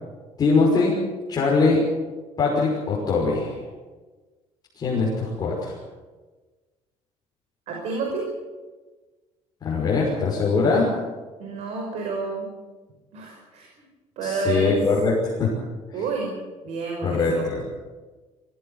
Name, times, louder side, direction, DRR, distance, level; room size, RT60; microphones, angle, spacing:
voice 1, 0.4-1.0 1.3-1.9 2.4-3.6 4.8-5.7 9.6-10.9 14.2-15.5 17.0-17.6, left 4 dB, 35° left, -5 dB, 5.9 m, -22 dB
voice 2, 7.7-8.3 11.4-12.5 13.1-13.9 14.2-14.8 15.9-16.3 16.6-17.5, right 4 dB, 70° right, 0 dB, 5.5 m, -29 dB
23.5 x 16.5 x 8.3 m, 1.3 s
cardioid pair, 165°, 12 cm